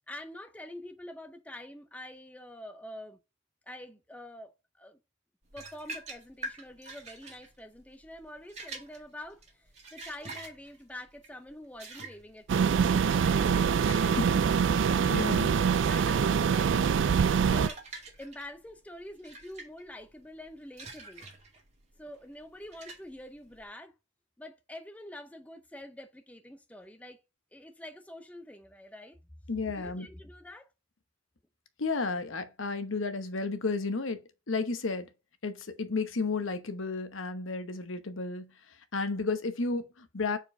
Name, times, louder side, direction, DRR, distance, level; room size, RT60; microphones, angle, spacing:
voice 1, 0.1-3.2 3.7-5.0 5.5-12.7 14.0-14.2 15.9-17.0 17.5-17.8 18.2-21.3 22.0-24.0 24.4-27.2 27.5-29.2 29.8-30.7, left 1 dB, 5° left, 0.5 m, -46 dB
sound 1, 5.5-23.6, right 2 dB, 35° right, 1.8 m, -47 dB
sound 2, 12.5-17.7, right 6 dB, 65° right, 0.3 m, -24 dB
voice 2, 13.9-14.3 14.6-14.7 15.0-15.5 29.5-30.1 31.8-34.2 34.5-35.1 35.4-38.5 38.9-40.4, left 3 dB, 75° left, 1.0 m, -32 dB
4.6 x 4.4 x 5.3 m
head